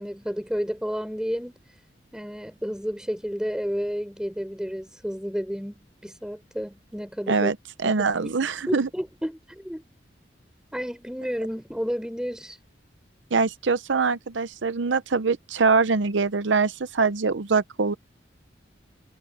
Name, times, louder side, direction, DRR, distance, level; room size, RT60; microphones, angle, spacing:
voice 1, 0.0-1.6 2.1-7.5 7.8-8.4 8.7-9.8 10.7-12.6, equal, 5° right, 6.1 m, -31 dB
voice 2, 7.8-8.9 13.3-17.9, right 4 dB, 85° right, 0.7 m, -23 dB
head